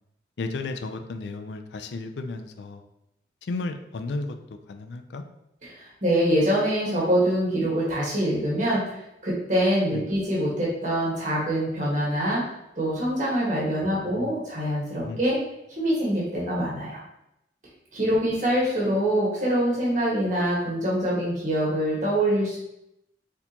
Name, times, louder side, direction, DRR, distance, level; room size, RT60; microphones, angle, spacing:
voice 1, 0.4-2.8 3.4-4.4 4.7-5.2 9.9-10.1 13.8-14.4 15.0-15.3, left 3 dB, 75° left, 6 dB, 0.4 m, -34 dB
voice 2, 5.6-8.8 9.2-12.4 12.8-15.4 15.8-17.0 17.9-22.6, right 1 dB, 45° right, -6 dB, 1.5 m, -24 dB
4.2 x 4.1 x 2.9 m, 0.83 s
head